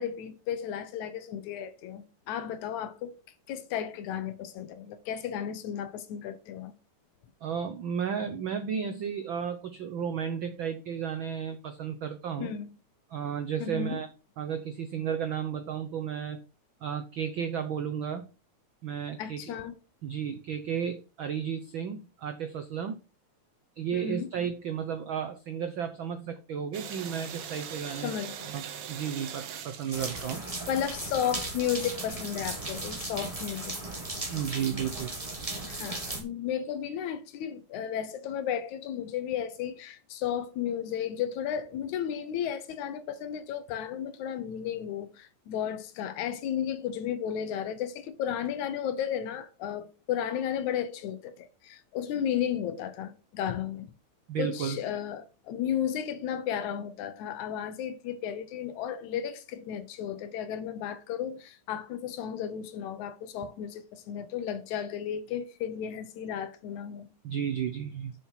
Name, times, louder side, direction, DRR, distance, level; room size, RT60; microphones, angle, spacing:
voice 1, 0.0-3.2 3.5-6.7 12.4-12.7 13.6-14.0 19.2-19.7 23.9-24.3 28.0-28.5 30.7-33.8 35.6-53.9 54.4-67.1, left 9 dB, 80° left, 2.4 m, -34 dB
voice 2, 7.4-12.5 13.1-14.1 14.4-16.4 16.8-18.2 18.8-19.5 20.0-23.0 23.8-28.1 28.5-30.4 34.3-35.1 54.3-54.8 67.2-68.1, right 8 dB, 80° right, 1.1 m, -33 dB
sound 1, 26.7-31.2 31.7-34.7, right 8 dB, 60° right, 1.7 m, -42 dB
sound 2, 29.9-36.2, right 2 dB, 15° right, 1.4 m, -36 dB
7.1 x 6.2 x 5.6 m
omnidirectional pair, 3.4 m